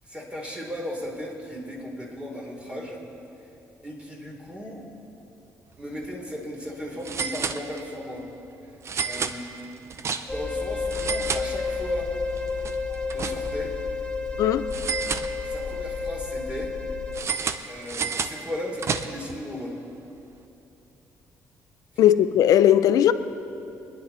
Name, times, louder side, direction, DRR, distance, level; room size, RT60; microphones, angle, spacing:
voice 1, 0.0-3.0 3.8-4.8 5.8-8.3 9.0-9.5 10.3-12.1 13.1-13.7 15.4-16.7 17.7-19.8 21.9-22.0, left 1 dB, 15° right, 3.4 m, -36 dB
sound 1, 5.9-6.1 6.3-6.4 7.0-8.1 8.8-10.5 10.8-12.0 12.4-13.7 14.7-15.8 17.1-19.4, right 6 dB, 50° right, 0.7 m, -31 dB
sound 2, 10.3-17.2, left 4 dB, 15° left, 1.7 m, -30 dB
voice 2, 22.0-23.1, left 11 dB, 75° left, 0.6 m, -18 dB
25.0 x 10.5 x 4.2 m
cardioid pair, 90°, 6 cm